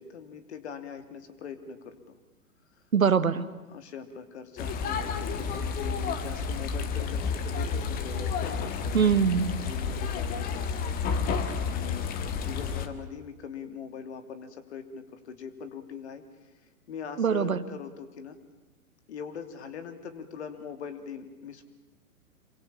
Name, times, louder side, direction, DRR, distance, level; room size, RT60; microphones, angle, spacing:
voice 1, 0.0-2.2 3.7-9.0 9.5-11.0 11.3-16.2 16.9-18.4 19.1-21.6, left 7 dB, 50° left, 9 dB, 3.1 m, -42 dB
voice 2, 2.9-3.5 8.9-9.6 17.2-17.6, right 6 dB, 70° right, 13 dB, 1.6 m, -23 dB
sound 1, 4.6-12.9, left 5 dB, 20° left, 1.8 m, -31 dB
27.5 x 24.0 x 8.9 m, 1.1 s
figure-of-eight pair, 115°, 43 cm